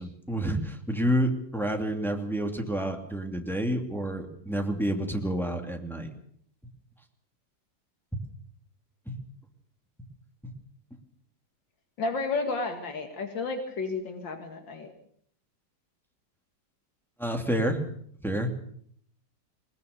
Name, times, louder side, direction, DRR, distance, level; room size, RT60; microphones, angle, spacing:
voice 1, 0.0-6.1 9.1-9.2 17.2-17.9 18.2-18.5, equal, ahead, 3 dB, 2.6 m, -29 dB
voice 2, 12.0-14.9, left 3 dB, 90° left, 5 dB, 2.8 m, -32 dB
21.0 x 20.5 x 6.8 m, 0.65 s
omnidirectional pair, 2.0 m